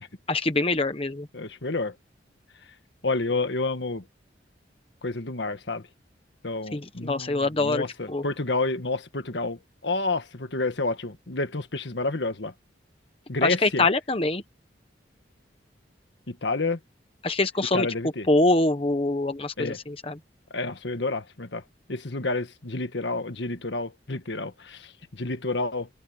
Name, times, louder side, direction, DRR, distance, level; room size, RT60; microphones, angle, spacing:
voice 1, 0.3-1.3 6.7-8.2 13.4-14.4 17.2-17.9 18.3-20.2, left 2 dB, 30° left, 1.1 m, -24 dB
voice 2, 1.3-1.9 3.0-4.1 5.0-5.8 6.4-12.5 13.3-13.9 16.3-16.8 17.7-18.3 19.6-19.8 20.5-21.6 21.9-25.9, left 3 dB, 70° left, 1.6 m, -29 dB
head